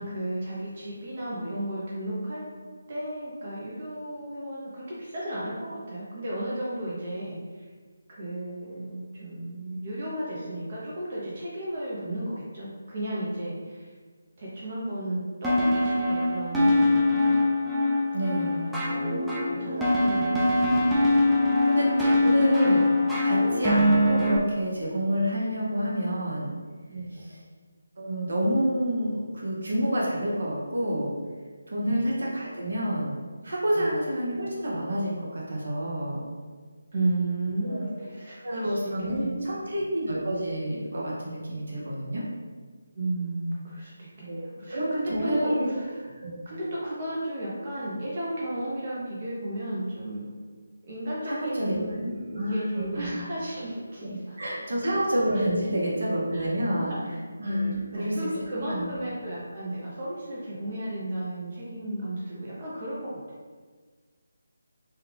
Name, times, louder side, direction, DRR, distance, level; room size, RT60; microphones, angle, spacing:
voice 1, 0.0-2.4 2.9-7.6 8.1-13.9 14.4-17.4 18.5-22.0 23.4-23.5 26.9-27.3 31.8-32.0 33.8-33.9 36.9-39.5 42.9-50.3 50.8-54.5 55.3-55.8 56.3-57.1 57.4-63.1, right 1 dB, 40° right, -6 dB, 0.7 m, -34 dB
sound 1, 15.4-24.4, left 1 dB, 5° right, 0.3 m, -23 dB
voice 2, 18.1-18.7 21.7-22.8 23.2-26.5 28.0-31.1 31.7-33.2 33.4-36.2 37.6-38.0 38.4-42.2 44.3-45.7 46.2-46.3 51.3-53.2 54.4-56.9 57.4-58.3 58.7-58.9, equal, 75° right, -5 dB, 1.1 m, -28 dB
3.3 x 2.4 x 3.2 m, 1.5 s
figure-of-eight pair, 165°, 0 cm